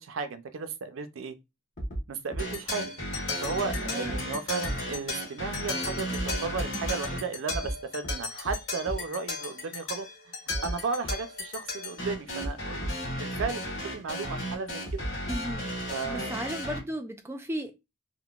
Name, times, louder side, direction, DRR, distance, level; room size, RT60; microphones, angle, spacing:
voice 1, 0.0-1.3 2.1-10.3 10.6-15.0 15.9-16.3, right 4 dB, 80° right, 0.4 m, -35 dB
sound 1, 1.8-2.0 2.3-2.4 3.7-3.8 4.1-4.2 4.6-4.7 6.1-6.9 7.5-7.7 8.0-8.1 8.4-8.5 8.9-9.0 10.5-10.7 11.0-11.1 12.4-12.5 12.8-12.9 13.4-13.5 14.9-15.6, right 1 dB, 35° left, 0.9 m, -32 dB
sound 2, 2.4-16.8, left 1 dB, 85° left, 1.3 m, -35 dB
voice 2, 3.8-4.3 15.3-15.7 16.1-17.7, equal, 10° right, 0.3 m, -35 dB
3.6 x 2.1 x 2.3 m
head